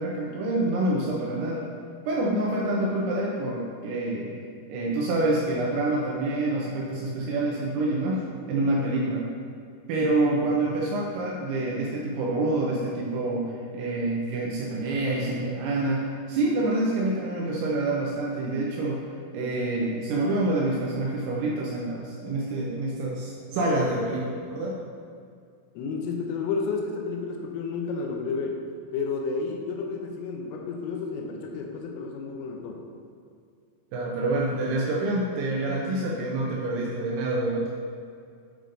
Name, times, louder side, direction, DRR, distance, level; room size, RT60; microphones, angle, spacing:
voice 1, 0.0-1.7 2.1-4.3 4.7-9.3 9.9-19.0 19.3-24.8 33.9-37.7, right 2 dB, 80° right, -3 dB, 2.8 m, -27 dB
voice 2, 25.8-28.6 28.9-32.8, left 4 dB, 85° left, 1 dB, 3.3 m, -31 dB
8.5 x 5.0 x 2.6 m, 2.3 s
omnidirectional pair, 5.7 m